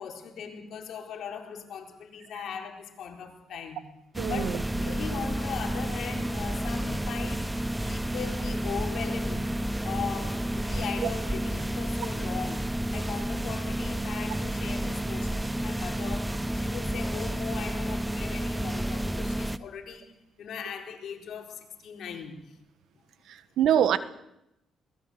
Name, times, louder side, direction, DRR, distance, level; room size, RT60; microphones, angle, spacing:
voice 1, 0.0-3.8 4.3-4.5 4.8-7.6 7.9-22.6 23.8-23.9, left 7 dB, 70° left, 4.1 m, -39 dB
sound 1, 4.1-19.6, right 1 dB, 10° right, 0.9 m, -31 dB
voice 2, 4.2-5.0 11.0-11.1 23.3-24.0, right 10 dB, 75° right, 1.4 m, -26 dB
22.0 x 18.5 x 8.1 m
cardioid pair, 90°, 0 cm